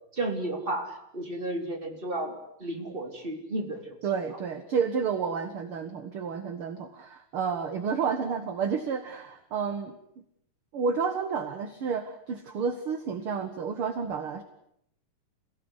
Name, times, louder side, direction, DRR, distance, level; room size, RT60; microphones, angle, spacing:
voice 1, 0.1-4.0, right 1 dB, 15° right, 3 dB, 4.0 m, -33 dB
voice 2, 4.0-10.0 10.7-14.4, right 6 dB, 50° right, 8 dB, 2.2 m, -30 dB
28.0 x 18.0 x 9.9 m, 0.73 s
omnidirectional pair, 3.5 m